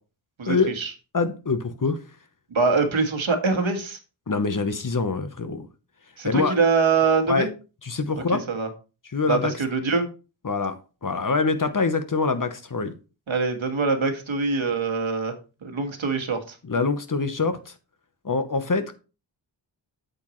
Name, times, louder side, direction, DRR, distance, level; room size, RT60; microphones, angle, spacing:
voice 1, 0.4-0.9 2.5-4.0 6.2-7.5 8.5-8.7 9.3-10.1 13.3-15.3 15.6-16.5, right 4 dB, 80° right, 1.7 m, -23 dB
voice 2, 1.1-2.0 4.3-5.7 6.2-6.6 7.3-7.5 7.8-8.4 9.1-9.5 10.4-12.9 16.6-17.7 18.2-18.9, left 4 dB, 45° left, 1.0 m, -24 dB
8.1 x 7.8 x 3.1 m
wide cardioid pair, 90°, 46 cm